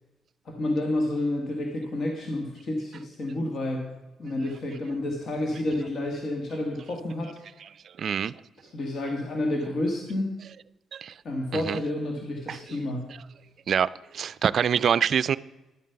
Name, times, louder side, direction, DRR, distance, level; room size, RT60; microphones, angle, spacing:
voice 1, 0.4-3.9 4.2-7.4 8.7-10.3 11.2-13.2, left 1 dB, 55° left, 2 dB, 1.6 m, -30 dB
voice 2, 7.6-8.4 10.9-11.2 11.5-11.8 12.5-12.8 13.1-13.2 13.7-15.4, right 8 dB, 55° right, 16 dB, 0.3 m, -26 dB
11.0 x 7.5 x 5.7 m, 1.1 s
cardioid pair, 90°, 0 cm